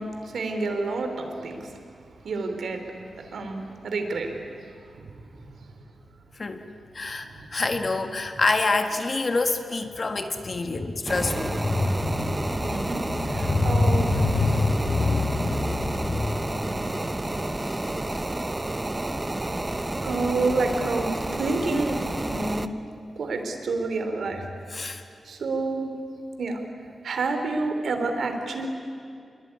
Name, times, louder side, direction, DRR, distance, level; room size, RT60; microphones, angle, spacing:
voice 1, 0.0-1.7 2.2-2.9 3.2-4.4 5.0-5.5 12.6-14.1 20.0-22.0 22.3-22.7 23.2-24.4 25.2-25.9 26.4-26.6 27.0-28.7, right 3 dB, 70° right, 5 dB, 3.4 m, -29 dB
voice 2, 6.9-16.7 17.0-18.4 24.7-25.0, left 3 dB, 35° left, 6 dB, 1.8 m, -26 dB
sound 1, 11.1-22.7, right 2 dB, 15° right, 0.8 m, -30 dB
26.0 x 22.5 x 9.8 m, 2.4 s
wide cardioid pair, 155°, 0 cm